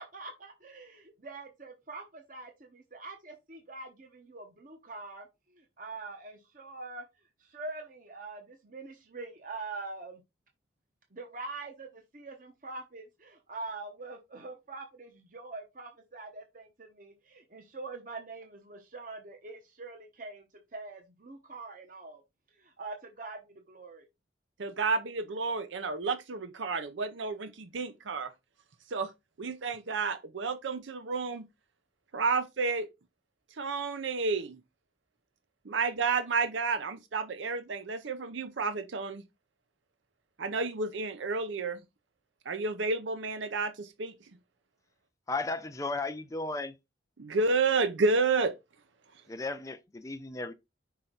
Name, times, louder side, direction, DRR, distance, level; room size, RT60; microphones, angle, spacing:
voice 1, 0.0-7.1 7.4-10.2 11.1-20.5 20.7-22.2 22.5-24.1, right 3 dB, 45° right, 0.9 m, -44 dB
voice 2, 24.6-28.3 28.9-29.1 29.4-31.5 32.1-32.9 33.5-34.6 35.6-39.2 40.4-41.8 42.4-44.1 47.2-48.6, right 4 dB, 80° right, 0.6 m, -30 dB
voice 3, 45.3-46.7 49.3-50.5, left 3 dB, 15° left, 0.5 m, -35 dB
5.7 x 4.4 x 3.8 m
head